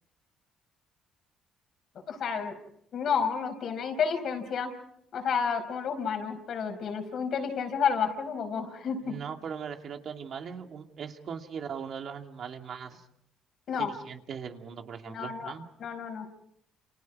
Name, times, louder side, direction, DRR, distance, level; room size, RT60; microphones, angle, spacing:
voice 1, 2.1-2.6 2.9-4.7 5.1-9.2 13.7-13.9 15.1-15.5 15.8-16.3, left 6 dB, 60° left, 6 dB, 4.9 m, -30 dB
voice 2, 9.0-13.0 13.8-15.6, right 7 dB, 55° right, 4 dB, 2.4 m, -39 dB
29.0 x 28.5 x 4.7 m, 0.72 s
cardioid pair, 95°, 0 cm